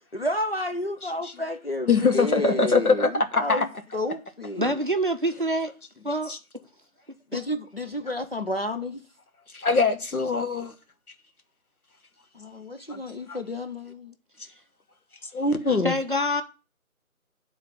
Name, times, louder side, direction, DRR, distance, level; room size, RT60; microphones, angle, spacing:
voice 1, 0.1-4.8 7.3-9.0 12.3-14.1, left 1 dB, 45° left, 0.7 m, -31 dB
voice 2, 1.9-3.6 6.3-6.4 9.5-10.7 12.9-13.0 13.3-13.4 15.3-15.9, left 4 dB, 85° left, 1.3 m, -23 dB
voice 3, 4.6-5.7 6.0-6.3 15.8-16.4, equal, 35° right, 0.6 m, -25 dB
8.1 x 4.0 x 6.7 m
figure-of-eight pair, 165°, 43 cm